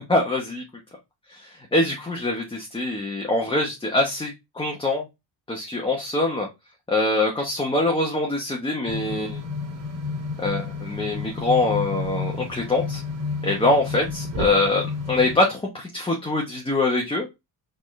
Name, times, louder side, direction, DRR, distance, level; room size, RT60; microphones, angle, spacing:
voice 1, 0.1-0.6 1.3-5.1 5.5-6.5 6.9-9.4 10.4-13.0 13.4-17.3, left 2 dB, 10° left, 0 dB, 1.0 m, -24 dB
sound 1, 8.9-15.4, left 4 dB, 40° right, 2.3 m, -31 dB
4.3 x 3.9 x 3.2 m, 0.23 s
cardioid pair, 100°, 45 cm